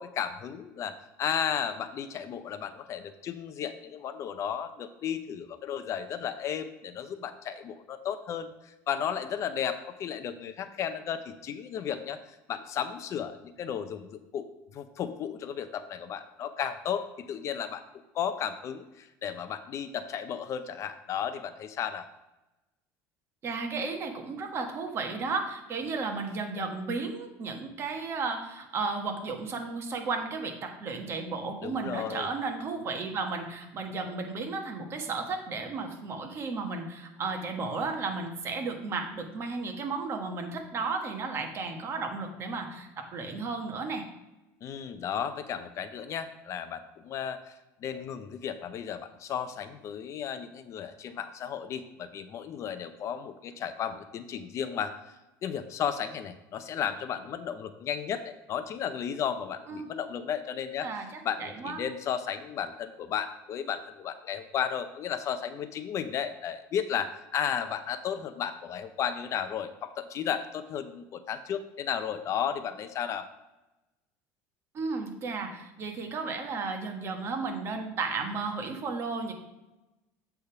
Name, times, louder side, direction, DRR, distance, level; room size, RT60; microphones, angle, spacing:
voice 1, 0.0-17.9 18.1-22.1 31.6-32.3 44.6-73.3, left 8 dB, 45° left, 10 dB, 0.6 m, -34 dB
voice 2, 23.4-44.1 59.7-59.8 60.8-61.8 74.7-79.3, right 4 dB, 40° right, 3 dB, 1.4 m, -34 dB
8.0 x 3.5 x 5.7 m, 1.0 s
supercardioid pair, 115°, 7 cm